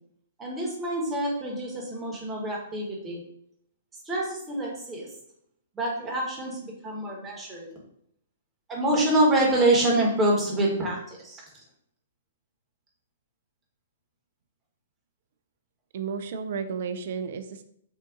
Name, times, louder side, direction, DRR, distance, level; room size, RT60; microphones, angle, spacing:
voice 1, 0.4-3.2 4.0-5.1 5.7-7.7 8.7-11.4, right 1 dB, 15° right, -3 dB, 1.0 m, -26 dB
voice 2, 15.9-17.6, right 6 dB, 55° right, 9 dB, 0.3 m, -32 dB
3.7 x 2.4 x 2.5 m, 0.71 s
figure-of-eight pair, 115°, 0 cm